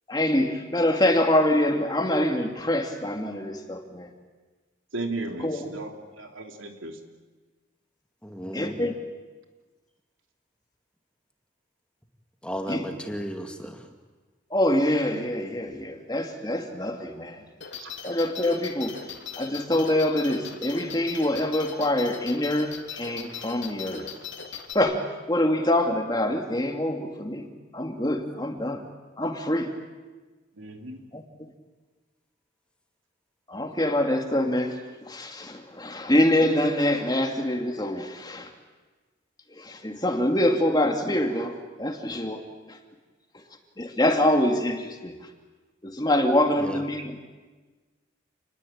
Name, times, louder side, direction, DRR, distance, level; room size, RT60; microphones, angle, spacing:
voice 1, 0.1-4.1 5.4-5.7 8.5-8.9 12.7-12.8 14.5-17.4 18.0-19.0 19.4-24.1 24.7-27.5 27.7-28.8 29.2-29.7 31.1-31.2 33.5-38.5 39.5-42.4 42.7-42.8 43.8-45.2 45.8-47.3, left 1 dB, 20° left, 4 dB, 2.4 m, -25 dB
voice 2, 4.9-5.9 6.2-7.0 17.8-17.9 30.6-31.0, right 2 dB, 90° right, 4 dB, 3.3 m, -35 dB
voice 3, 8.2-8.8 12.4-13.9 46.6-46.8, equal, 5° left, 3 dB, 2.3 m, -34 dB
sound 1, 17.6-24.7, left 7 dB, 65° left, 3.3 m, -39 dB
29.0 x 21.0 x 8.8 m, 1.3 s
head